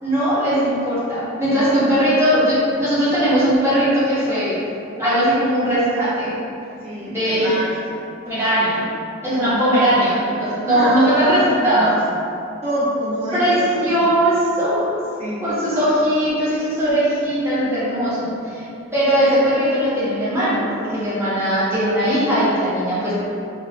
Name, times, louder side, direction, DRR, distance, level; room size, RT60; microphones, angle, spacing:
voice 1, 0.0-4.6 4.9-6.3 7.1-7.5 8.2-8.8 9.2-11.9 13.3-15.0 15.4-18.6 18.9-23.1, equal, 15° right, -12 dB, 1.2 m, -19 dB
voice 2, 1.4-2.1 6.8-8.2 9.2-9.6 10.6-12.0 12.6-14.2 15.2-15.5, equal, 30° right, -12 dB, 1.2 m, -27 dB
3.5 x 2.7 x 2.9 m, 2.6 s
head